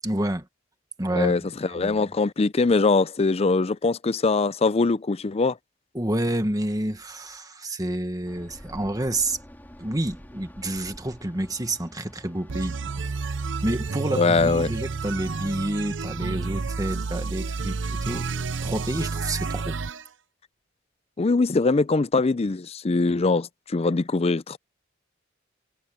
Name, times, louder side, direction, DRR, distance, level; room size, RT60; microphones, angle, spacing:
voice 1, 0.0-0.5 1.0-2.0 5.9-9.4 9.8-12.8 13.6-18.3 18.6-19.8, right 1 dB, 20° right, 1.6 m, -29 dB
voice 2, 1.1-5.6 14.2-14.7 21.2-24.6, left 3 dB, 30° left, 0.5 m, -22 dB
sound 1, 8.3-19.2, equal, 10° left, 2.9 m, -49 dB
sound 2, 12.5-20.0, right 4 dB, 65° right, 0.7 m, -30 dB
head